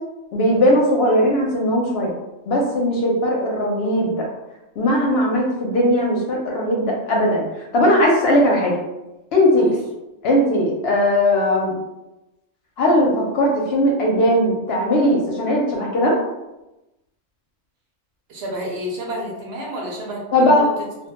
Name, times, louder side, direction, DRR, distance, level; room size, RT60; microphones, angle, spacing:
voice 1, 0.3-2.1 2.5-4.3 4.8-7.4 7.7-8.7 9.3-9.7 10.2-11.7 12.8-16.1 20.3-20.7, equal, 65° left, -1 dB, 0.7 m, -18 dB
voice 2, 18.3-20.7, equal, 65° right, -2 dB, 0.8 m, -30 dB
2.2 x 2.1 x 2.9 m, 0.97 s
omnidirectional pair, 1.3 m